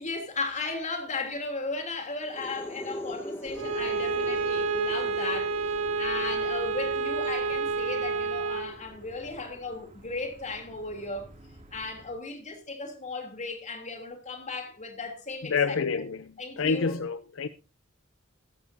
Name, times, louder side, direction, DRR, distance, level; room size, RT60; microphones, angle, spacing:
voice 1, 0.0-11.3 11.7-15.8 16.4-17.0, left 3 dB, 35° left, 3.1 m, -36 dB
sound 1, 2.2-9.8, equal, 10° left, 2.0 m, -42 dB
sound 2, 3.4-12.1, right 1 dB, 35° right, 2.6 m, -51 dB
Bowed string instrument, 3.5-8.7, right 4 dB, 75° right, 2.2 m, -29 dB
voice 2, 15.5-16.3 16.6-17.5, left 5 dB, 70° left, 0.6 m, -27 dB
16.0 x 13.5 x 2.7 m
head